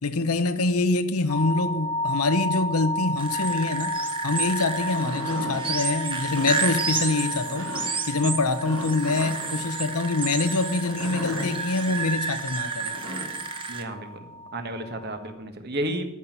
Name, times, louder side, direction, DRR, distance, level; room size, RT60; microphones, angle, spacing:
voice 1, 0.0-7.8 8.1-12.9, left 3 dB, 85° left, 1.0 m, -25 dB
sound 1, 1.3-15.3, left 1 dB, 25° left, 1.2 m, -34 dB
sound 2, 3.2-13.8, right 4 dB, 25° right, 1.2 m, -31 dB
sound 3, 4.7-5.6 6.2-6.6 7.5-7.9 8.6-9.6 10.8-11.5 12.7-13.4, equal, 70° right, 3.9 m, -36 dB
voice 2, 13.7-16.1, right 1 dB, 45° right, 1.6 m, -32 dB
14.0 x 6.0 x 9.4 m
head